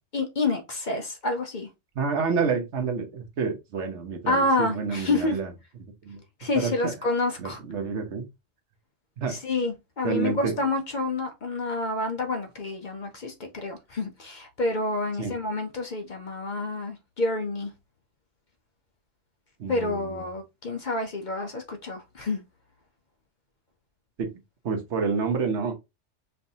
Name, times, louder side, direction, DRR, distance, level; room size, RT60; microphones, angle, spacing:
voice 1, 0.1-1.7 4.3-5.4 6.4-7.6 9.3-17.7 19.7-22.4, left 2 dB, 50° left, 0.7 m, -28 dB
voice 2, 1.9-5.5 6.0-6.2 6.5-6.9 7.4-8.2 9.2-9.4 10.0-10.5 15.2-15.3 19.6-20.2 24.2-24.3 24.6-25.7, right 5 dB, 75° right, 1.2 m, -28 dB
5.4 x 2.6 x 2.7 m
omnidirectional pair, 1.2 m